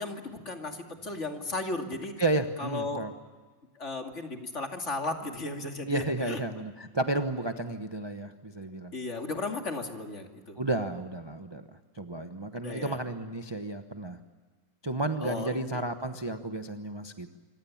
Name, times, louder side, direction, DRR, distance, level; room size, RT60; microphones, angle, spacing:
voice 1, 0.0-2.1 2.6-3.0 3.8-6.4 8.9-10.6 12.6-13.0 15.2-15.6, left 3 dB, 40° left, 4 dB, 2.6 m, -35 dB
voice 2, 2.2-3.1 5.9-8.9 10.6-11.6 11.9-14.2 14.8-17.4, right 2 dB, 20° right, 6 dB, 0.7 m, -32 dB
26.5 x 24.5 x 7.2 m, 1.5 s
omnidirectional pair, 2.0 m